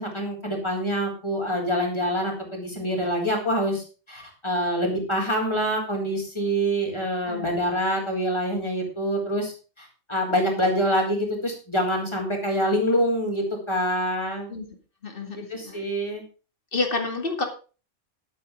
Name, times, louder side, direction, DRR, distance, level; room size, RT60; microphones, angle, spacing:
voice 1, 0.0-14.5 15.2-16.2, equal, 20° left, 0 dB, 4.1 m, -26 dB
voice 2, 15.0-15.4 15.6-15.9 16.7-17.4, left 3 dB, 45° left, 4 dB, 2.7 m, -28 dB
12.0 x 8.7 x 5.2 m, 0.35 s
omnidirectional pair, 1.3 m